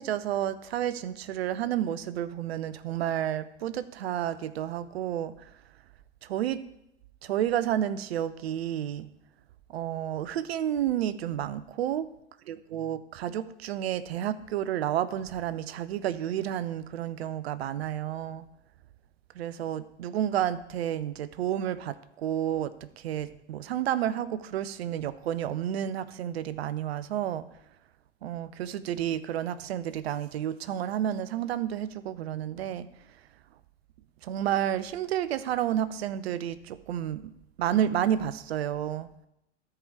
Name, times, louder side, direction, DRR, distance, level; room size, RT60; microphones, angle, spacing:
voice 1, 0.0-5.5 6.2-6.6 7.2-9.1 9.7-12.1 12.5-18.5 19.3-27.5 28.2-32.9 34.2-39.1, right 11 dB, 60° right, 15 dB, 0.6 m, -31 dB
13.5 x 4.8 x 4.7 m, 0.83 s
figure-of-eight pair, 85°, 36 cm